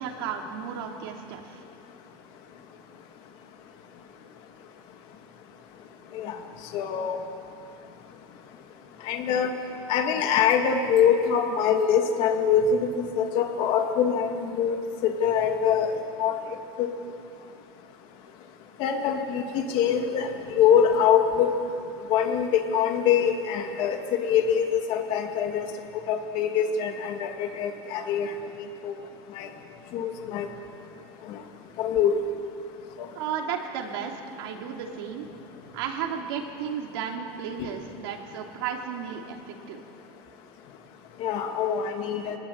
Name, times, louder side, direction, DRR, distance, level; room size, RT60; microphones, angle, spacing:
voice 1, 0.0-1.6 33.1-35.3 35.7-39.8, right 7 dB, 75° right, 1 dB, 3.1 m, -34 dB
voice 2, 6.7-7.2 9.0-9.5 9.9-12.9 13.2-14.8 15.0-15.9 16.2-16.4 16.8-16.9 18.8-20.3 20.6-21.5 22.1-25.7 26.1-28.9 29.3-29.5 29.9-30.5 31.3-31.4 31.8-32.2 33.0-33.1 41.2-42.4, left 8 dB, 40° left, 4 dB, 2.4 m, -24 dB
23.0 x 20.0 x 8.8 m, 2.6 s
supercardioid pair, 175°, 12 cm